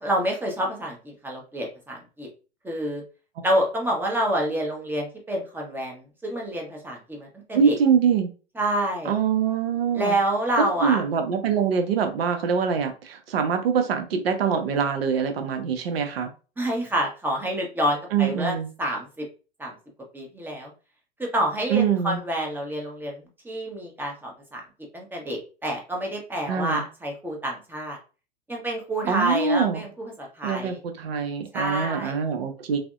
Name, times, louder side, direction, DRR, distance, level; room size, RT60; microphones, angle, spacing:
voice 1, 0.0-2.3 2.6-3.0 3.4-7.8 8.6-9.2 9.9-11.0 16.6-19.3 19.6-19.7 20.1-20.7 21.2-24.6 24.9-28.0 28.5-30.8 31.5-32.2, right 1 dB, 5° right, 0 dB, 0.7 m, -28 dB
voice 2, 7.5-8.3 9.0-10.2 10.6-16.3 18.1-18.7 21.7-22.2 26.5-26.8 29.1-29.8 30.4-32.8, right 6 dB, 65° right, 6 dB, 0.7 m, -24 dB
3.4 x 2.1 x 2.4 m, 0.34 s
figure-of-eight pair, 95°, 32 cm